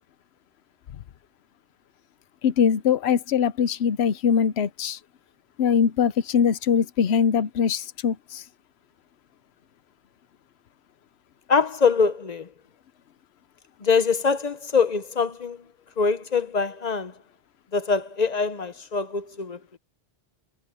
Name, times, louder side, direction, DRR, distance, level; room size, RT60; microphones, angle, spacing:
voice 1, 2.4-5.0 5.6-8.4, left 7 dB, 85° left, 1.0 m, -22 dB
voice 2, 11.5-12.4 13.8-15.6 16.0-17.1 17.7-19.6, left 5 dB, 45° left, 0.8 m, -23 dB
omnidirectional pair, 1.0 m